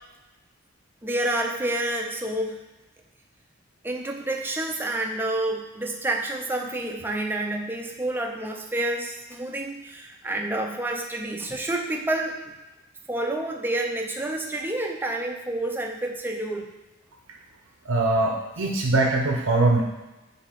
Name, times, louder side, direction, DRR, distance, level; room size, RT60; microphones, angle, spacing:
voice 1, 1.0-2.6 3.8-12.5 13.1-16.7, right 1 dB, 10° right, 1 dB, 0.5 m, -29 dB
voice 2, 17.8-19.8, right 2 dB, 65° right, 1 dB, 0.7 m, -22 dB
7.2 x 2.8 x 5.2 m, 1.1 s
head